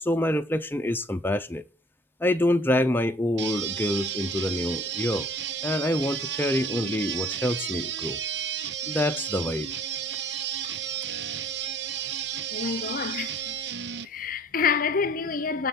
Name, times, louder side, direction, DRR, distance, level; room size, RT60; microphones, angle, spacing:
voice 1, 0.0-1.6 2.2-5.3 5.6-8.2 8.8-9.7, left 1 dB, 10° left, 0.8 m, -26 dB
sound 1, 3.4-14.1, right 10 dB, 75° right, 0.9 m, -32 dB
voice 2, 12.5-13.5 14.0-15.7, left 6 dB, 50° left, 0.7 m, -27 dB
12.5 x 4.4 x 8.4 m
head